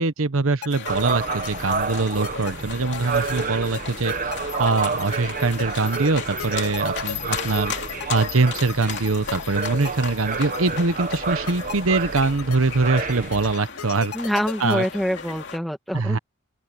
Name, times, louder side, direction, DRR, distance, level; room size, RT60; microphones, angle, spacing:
voice 1, 0.0-7.7 8.1-14.1 14.6-14.8 15.9-16.2, right 3 dB, 75° right, 1.0 m, -23 dB
sound 1, 0.6-15.3, left 7 dB, 85° left, 0.8 m, -36 dB
sound 2, 0.7-15.6, left 6 dB, 55° left, 2.9 m, -36 dB
sound 3, 0.9-13.5, right 4 dB, 40° right, 0.9 m, -30 dB
voice 2, 14.1-16.2, equal, ahead, 1.9 m, -25 dB
open air
head